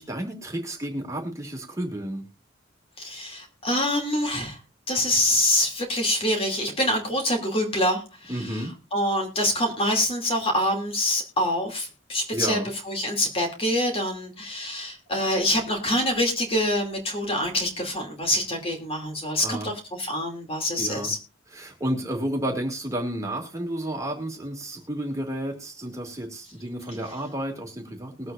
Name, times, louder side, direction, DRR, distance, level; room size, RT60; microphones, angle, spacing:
voice 1, 0.0-2.2 8.3-8.7 12.3-12.7 19.4-19.7 20.8-21.1 21.5-28.3, right 1 dB, 15° right, 1 dB, 2.3 m, -31 dB
voice 2, 3.0-4.6 4.9-8.7 8.9-12.6 12.8-21.2, left 1 dB, 30° left, 2 dB, 2.6 m, -25 dB
21.0 x 8.0 x 2.5 m, 0.33 s
head